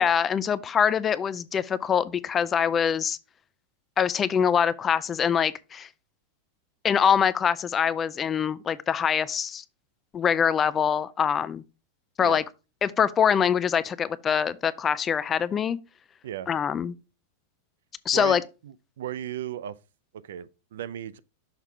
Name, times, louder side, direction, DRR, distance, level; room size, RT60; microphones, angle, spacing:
voice 1, 0.0-3.2 4.0-5.9 6.8-9.6 10.1-11.6 12.2-12.4 12.8-15.8 16.5-16.9 18.1-18.4, left 7 dB, 20° left, 0.4 m, -24 dB
voice 2, 18.1-19.8 20.2-21.2, right 10 dB, 80° right, 0.4 m, -36 dB
6.5 x 3.7 x 4.5 m
supercardioid pair, 150°, 0 cm